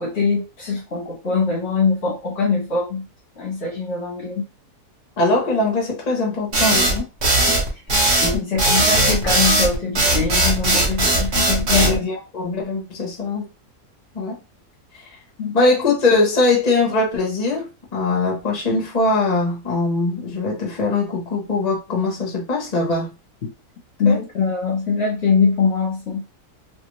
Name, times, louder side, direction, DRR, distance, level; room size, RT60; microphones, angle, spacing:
voice 1, 0.0-3.1 3.4-4.4 7.9-12.0 15.4-15.5 24.0-26.2, left 4 dB, 45° left, 1.1 m, -22 dB
voice 2, 5.2-7.1 8.3-8.6 11.7-13.4 14.1-14.4 14.9-15.0 15.5-17.7 17.9-23.1 24.0-24.2, left 3 dB, 30° left, 0.8 m, -21 dB
sound 1, 6.5-12.0, right 2 dB, 45° right, 1.1 m, -18 dB
3.0 x 2.5 x 3.1 m
omnidirectional pair, 1.8 m